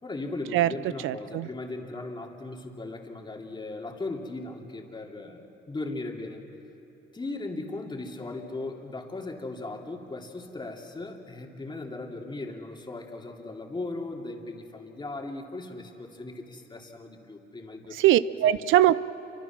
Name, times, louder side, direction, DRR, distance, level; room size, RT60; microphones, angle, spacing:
voice 1, 0.0-6.4 7.1-18.1 18.4-18.6, left 2 dB, 25° left, 1 dB, 2.9 m, -38 dB
voice 2, 1.0-1.5 18.0-19.0, right 13 dB, 85° right, 16 dB, 0.6 m, -21 dB
28.0 x 25.0 x 6.1 m, 3.0 s
cardioid pair, 90°, 20 cm